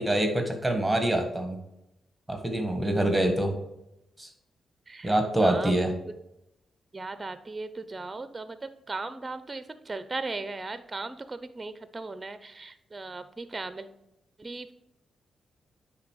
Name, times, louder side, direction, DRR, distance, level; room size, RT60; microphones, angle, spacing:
voice 1, 0.0-1.6 2.3-3.6 4.2-4.3 5.0-5.9, right 1 dB, 10° right, 4 dB, 1.6 m, -25 dB
voice 2, 5.4-5.7 6.9-13.9 14.4-14.7, right 3 dB, 30° right, 12 dB, 0.6 m, -37 dB
9.6 x 3.7 x 4.8 m, 0.88 s
supercardioid pair, 55°, 0 cm